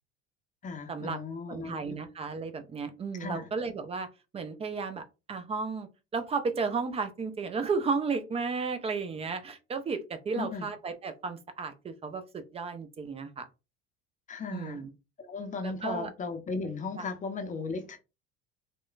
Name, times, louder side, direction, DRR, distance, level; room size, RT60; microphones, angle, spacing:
voice 1, 0.6-2.0 3.2-3.5 10.3-10.7 14.3-14.8 15.3-18.0, left 4 dB, 20° left, 0.6 m, -36 dB
voice 2, 1.5-4.1 4.3-13.5 14.5-14.9 15.6-16.1 17.0-17.1, right 4 dB, 20° right, 0.4 m, -33 dB
2.9 x 2.1 x 2.4 m
hypercardioid pair, 70°, 36 cm